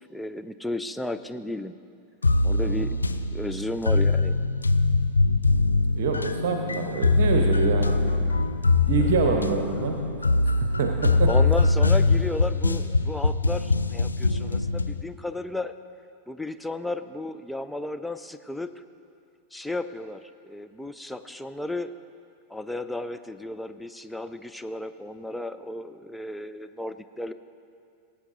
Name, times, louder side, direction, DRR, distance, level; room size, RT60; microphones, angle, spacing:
voice 1, 0.1-1.7 2.4-2.9 3.3-4.4 8.3-8.4 9.0-9.1 11.3-15.7 16.3-18.7 19.5-21.9 22.5-27.3, left 2 dB, 5° left, 10 dB, 0.4 m, -33 dB
sound 1, 2.2-15.0, left 3 dB, 80° left, 0.4 m, -23 dB
voice 2, 6.0-8.3 8.9-9.9 10.8-10.9 11.2-11.3, right 5 dB, 55° right, 3 dB, 0.8 m, -26 dB
20.0 x 8.5 x 2.6 m, 2.4 s
figure-of-eight pair, 90°, 0 cm